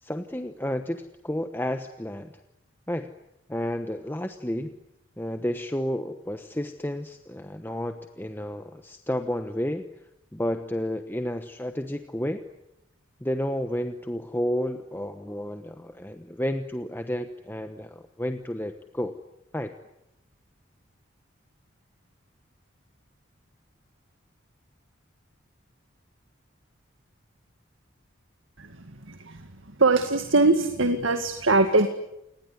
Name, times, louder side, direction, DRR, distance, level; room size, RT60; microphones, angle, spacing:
voice 1, 0.0-2.3 2.9-3.1 3.5-4.7 5.2-9.8 10.3-12.4 13.2-19.1 19.5-19.7, left 1 dB, 10° left, 7 dB, 1.0 m, -31 dB
voice 2, 28.6-29.5 29.8-31.9, right 3 dB, 75° right, 7 dB, 2.0 m, -22 dB
28.5 x 20.0 x 9.7 m, 0.86 s
head